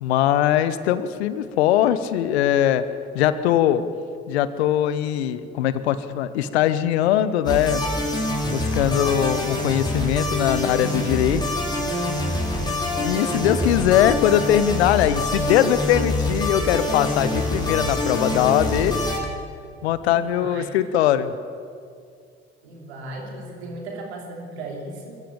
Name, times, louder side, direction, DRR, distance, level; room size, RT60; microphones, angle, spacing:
voice 1, 0.0-2.8 3.1-3.8 4.3-7.8 8.5-11.4 13.0-19.0 19.8-21.3, left 11 dB, 80° left, 14 dB, 0.9 m, -21 dB
sound 1, 7.5-19.2, left 1 dB, 15° left, 5.5 m, -25 dB
voice 2, 12.6-13.8 20.1-20.7 22.6-25.1, right 2 dB, 80° right, 1 dB, 3.0 m, -37 dB
22.5 x 14.5 x 8.8 m, 2.3 s
hypercardioid pair, 45°, 32 cm